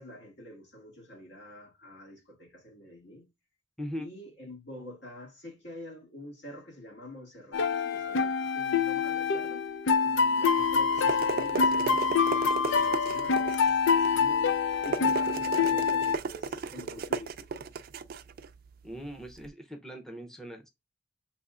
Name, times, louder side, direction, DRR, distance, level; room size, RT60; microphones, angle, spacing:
voice 1, 0.0-3.3 4.0-9.8 10.0-17.7, left 1 dB, 70° left, 2.0 m, -47 dB
voice 2, 3.8-4.1 18.8-20.7, equal, 5° left, 0.6 m, -40 dB
sound 1, 7.5-16.2, left 5 dB, 85° left, 0.5 m, -26 dB
sound 2, 10.6-19.5, right 5 dB, 55° right, 0.4 m, -36 dB
6.8 x 3.0 x 2.4 m
head